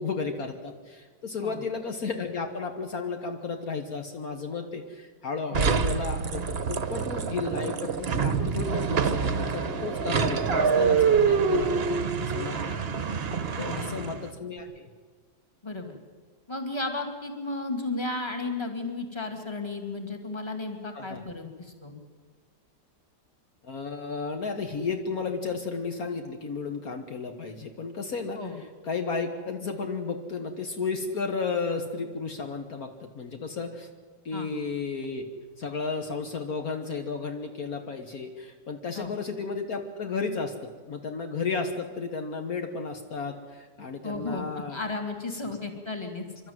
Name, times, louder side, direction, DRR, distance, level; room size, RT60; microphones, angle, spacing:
voice 1, 0.0-6.4 6.7-13.2 13.6-14.9 20.9-21.2 23.6-33.9 34.3-35.3 35.6-44.8, left 4 dB, 60° left, 5 dB, 1.8 m, -33 dB
sound 1, 5.5-14.3, right 6 dB, 45° right, 1.0 m, -26 dB
voice 2, 13.6-13.9 15.6-16.0 16.5-21.9 28.4-28.6 34.3-34.5 39.0-39.1 44.0-44.4 44.7-46.3, left 3 dB, 15° left, 5 dB, 2.1 m, -34 dB
27.0 x 12.5 x 9.3 m, 1.5 s
omnidirectional pair, 1.8 m